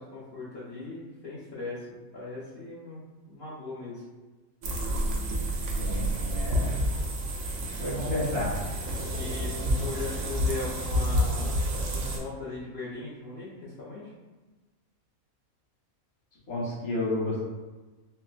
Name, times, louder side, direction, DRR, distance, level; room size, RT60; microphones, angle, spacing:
voice 1, 0.0-4.0 9.1-14.0, left 3 dB, 45° left, -10 dB, 0.8 m, -39 dB
sound 1, 4.6-12.2, equal, 70° right, 1.0 m, -29 dB
voice 2, 5.7-6.8 7.8-8.5 16.5-17.4, left 1 dB, 80° left, -10 dB, 1.7 m, -31 dB
4.5 x 2.0 x 2.4 m, 1.2 s
omnidirectional pair, 1.5 m